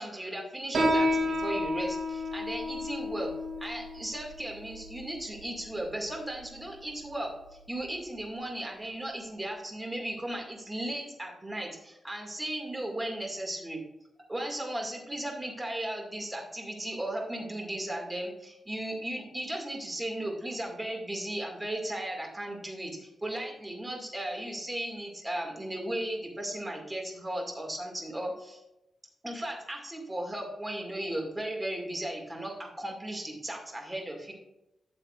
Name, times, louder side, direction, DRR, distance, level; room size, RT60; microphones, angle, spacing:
voice 1, 0.0-3.3 3.6-13.8 14.3-28.6 29.2-34.3, right 1 dB, 15° right, 1 dB, 2.1 m, -36 dB
Piano, 0.7-7.8, left 1 dB, 70° right, 2.5 m, -32 dB
12.5 x 7.6 x 2.5 m, 0.91 s
wide cardioid pair, 120°, 0 cm